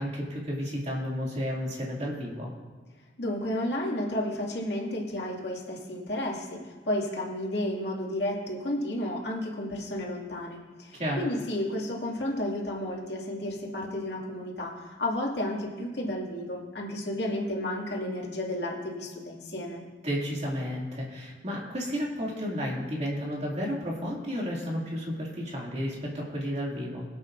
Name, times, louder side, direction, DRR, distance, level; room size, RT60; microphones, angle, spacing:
voice 1, 0.0-2.5 11.0-11.2 20.0-27.0, equal, 40° right, -3 dB, 2.5 m, -32 dB
voice 2, 3.2-19.8, left 1 dB, 70° left, -2 dB, 2.3 m, -32 dB
22.0 x 8.4 x 2.6 m, 1.4 s
head